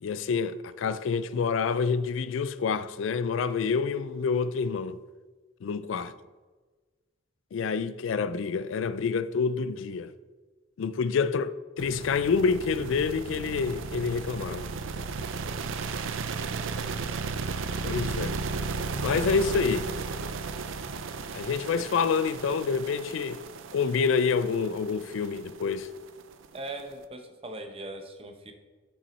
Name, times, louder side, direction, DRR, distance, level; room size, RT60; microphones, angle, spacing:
voice 1, 0.0-5.0 5.6-6.1 7.5-10.1 10.8-14.7 17.8-18.3 19.0-19.9 21.3-23.4 23.7-25.9, left 5 dB, 70° left, 0.3 m, -27 dB
sound 1, 11.8-26.9, right 4 dB, 70° right, 0.5 m, -35 dB
voice 2, 26.5-28.5, right 2 dB, 30° right, 0.7 m, -40 dB
7.1 x 5.9 x 4.1 m
head